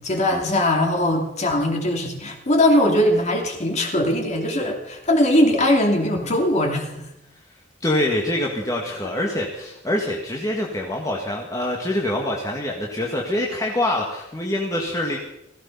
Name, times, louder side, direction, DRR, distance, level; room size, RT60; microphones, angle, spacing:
voice 1, 0.0-7.1, left 1 dB, 40° left, 2 dB, 2.8 m, -20 dB
voice 2, 7.8-15.2, left 1 dB, 20° left, -1 dB, 1.9 m, -25 dB
16.0 x 16.0 x 5.5 m, 0.85 s
head